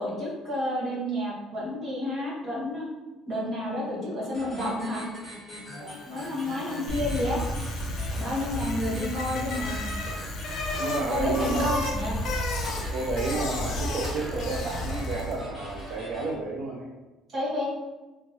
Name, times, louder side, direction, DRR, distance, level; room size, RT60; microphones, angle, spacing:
voice 1, 0.0-2.9 3.3-5.0 6.1-7.4 8.2-9.9 11.1-12.2 17.3-17.7, left 1 dB, 35° right, -5 dB, 1.4 m, -30 dB
sound 1, 4.3-16.3, equal, ahead, 1.5 m, -43 dB
voice 2, 5.7-6.0 10.8-11.7 12.9-16.9, right 3 dB, 60° right, -2 dB, 0.5 m, -31 dB
Bicycle, 6.0-15.5, left 3 dB, 50° left, 0.6 m, -36 dB
sound 2, 6.9-16.0, equal, 20° right, 1.2 m, -34 dB
3.4 x 2.9 x 2.9 m, 1.1 s
cardioid pair, 140°, 0 cm